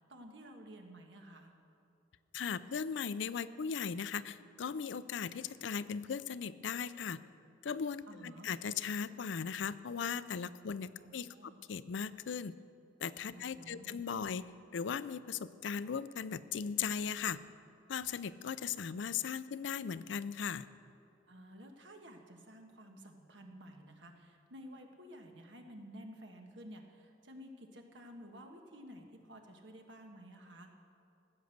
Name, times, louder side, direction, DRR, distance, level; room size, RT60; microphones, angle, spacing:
voice 1, 0.0-1.5 8.1-8.5 11.0-11.6 13.3-13.9 14.2-14.3 21.3-30.7, equal, 70° right, 4 dB, 1.4 m, -52 dB
voice 2, 2.3-7.2 7.6-12.5 13.0-14.5 14.7-17.4 17.9-20.7, left 6 dB, 70° left, 15 dB, 0.4 m, -38 dB
15.5 x 8.1 x 6.6 m, 2.7 s
head